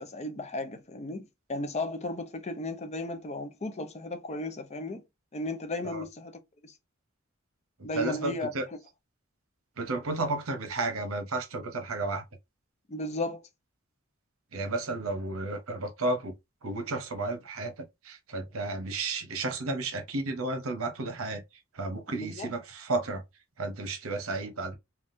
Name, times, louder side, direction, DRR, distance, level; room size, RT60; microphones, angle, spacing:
voice 1, 0.0-5.0 5.3-6.7 7.8-8.5 12.9-13.5 22.1-22.5, left 2 dB, 30° left, 0.5 m, -35 dB
voice 2, 7.8-8.6 9.8-12.2 14.5-16.3 16.6-21.4 21.7-23.2 23.6-24.8, right 2 dB, 80° right, 0.8 m, -32 dB
3.4 x 2.3 x 2.6 m
head